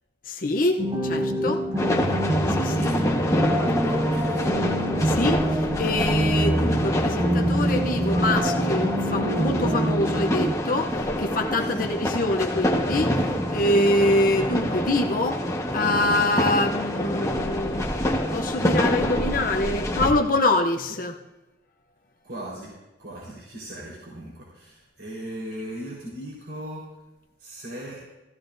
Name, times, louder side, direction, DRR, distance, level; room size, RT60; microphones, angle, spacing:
voice 1, 0.3-1.7 2.5-2.9 5.0-13.2 13.5-15.4 15.7-17.9 18.3-21.2, left 2 dB, 50° left, 3 dB, 0.7 m, -25 dB
sound 1, 0.8-10.5, right 1 dB, 25° right, 0.7 m, -25 dB
sound 2, 1.8-20.1, left 1 dB, 20° left, 1.3 m, -26 dB
voice 2, 3.8-4.6 11.6-11.9 22.2-22.7 23.0-26.9 27.4-28.0, right 1 dB, 70° right, -6 dB, 4.3 m, -38 dB
15.5 x 15.0 x 2.6 m, 1.0 s
head